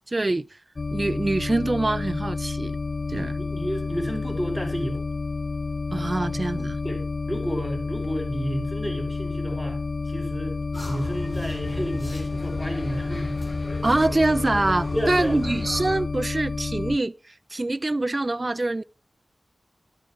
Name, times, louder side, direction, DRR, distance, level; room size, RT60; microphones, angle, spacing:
voice 1, 0.1-0.5 0.9-2.8 3.1-3.4 5.9-6.8 13.8-17.1 17.5-18.8, right 2 dB, 40° right, 0.5 m, -24 dB
sound 1, 0.8-17.0, left 3 dB, 60° left, 0.5 m, -30 dB
voice 2, 3.4-5.0 6.2-6.4 6.8-9.8 10.0-13.5 14.9-15.4, equal, 5° left, 5.8 m, -31 dB
sound 2, 10.7-16.0, left 1 dB, 35° left, 6.4 m, -36 dB
13.0 x 12.0 x 3.2 m
cardioid pair, 45°, 0 cm